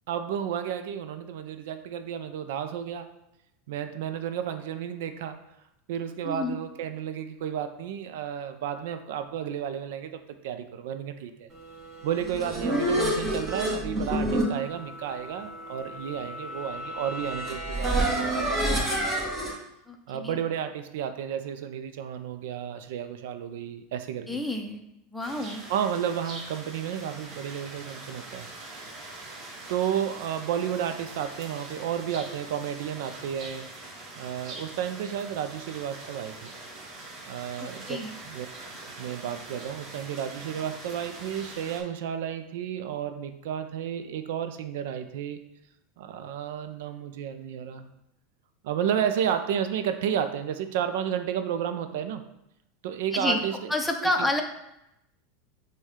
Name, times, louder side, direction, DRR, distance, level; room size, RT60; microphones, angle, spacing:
voice 1, 0.1-3.1 3.7-5.4 5.9-11.5 12.0-19.0 20.1-24.4 25.7-28.5 29.7-33.7 34.2-36.5 37.2-38.5 38.8-45.4 46.0-47.9 48.6-52.2 52.8-53.7 54.0-54.3, right 9 dB, 75° right, 8 dB, 0.4 m, -32 dB
voice 2, 6.2-6.6 19.9-20.4 24.3-24.8 25.1-25.6 37.6-38.1 53.1-53.4 53.7-54.4, left 1 dB, 5° left, 3 dB, 0.6 m, -29 dB
sound 1, 12.0-19.5, right 1 dB, 20° right, 1.5 m, -29 dB
sound 2, 25.2-41.8, right 2 dB, 40° right, 1.2 m, -43 dB
6.1 x 2.2 x 3.6 m, 0.85 s
supercardioid pair, 115°, 0 cm